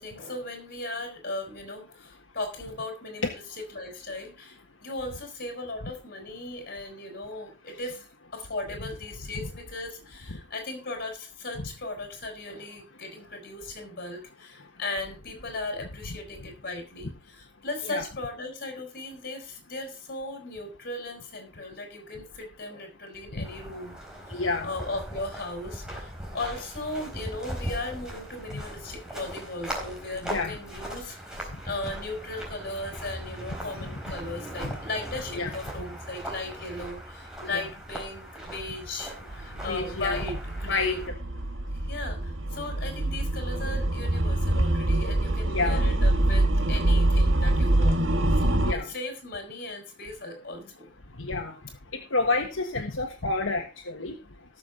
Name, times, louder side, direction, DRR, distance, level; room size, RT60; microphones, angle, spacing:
voice 1, 0.0-24.0 24.3-41.0 41.7-48.1 48.4-50.9, left 2 dB, 50° left, 4 dB, 5.5 m, -37 dB
sound 1, 23.4-41.1, right 1 dB, 5° right, 4.2 m, -39 dB
voice 2, 24.3-24.7 28.5-28.6 30.2-30.6 34.6-34.7 35.4-35.5 39.7-40.2 40.7-41.1 45.5-45.8 48.6-48.9 51.2-51.5 51.9-54.2, left 3 dB, 80° left, 2 dB, 1.5 m, -29 dB
sound 2, 39.3-48.7, right 1 dB, 75° right, 1.7 m, -25 dB
18.5 x 7.1 x 3.9 m, 0.30 s
head